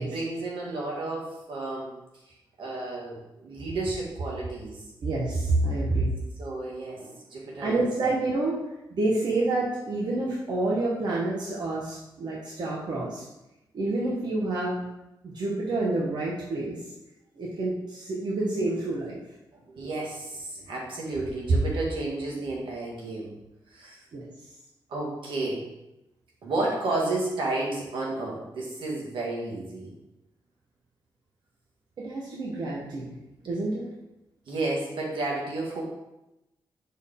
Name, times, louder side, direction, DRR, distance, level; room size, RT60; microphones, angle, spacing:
voice 1, 0.0-2.0 2.6-4.8 6.4-7.9 19.5-23.3 23.7-24.0 24.9-25.6 26.4-29.9 34.5-35.8, right 2 dB, 80° right, -4 dB, 1.9 m, -32 dB
voice 2, 5.0-6.1 7.6-8.6 8.9-13.2 13.7-14.8 15.2-16.8 17.4-19.2 24.1-24.2 32.0-33.1 33.4-33.8, right 2 dB, 60° right, -5 dB, 1.2 m, -28 dB
6.2 x 4.2 x 3.7 m, 0.93 s
wide cardioid pair, 115°, 8 cm